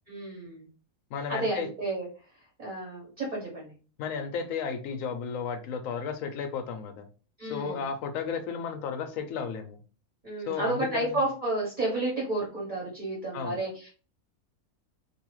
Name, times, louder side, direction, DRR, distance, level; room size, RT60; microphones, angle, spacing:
voice 1, 0.1-0.7 1.3-2.1 2.6-3.7 7.4-7.9 10.2-13.9, right 2 dB, 35° right, 1.1 m, -31 dB
voice 2, 1.1-1.7 4.0-7.1 7.5-9.8 10.5-11.2 13.3-13.6, left 6 dB, 70° left, 0.9 m, -33 dB
2.6 x 2.4 x 3.0 m
omnidirectional pair, 1.5 m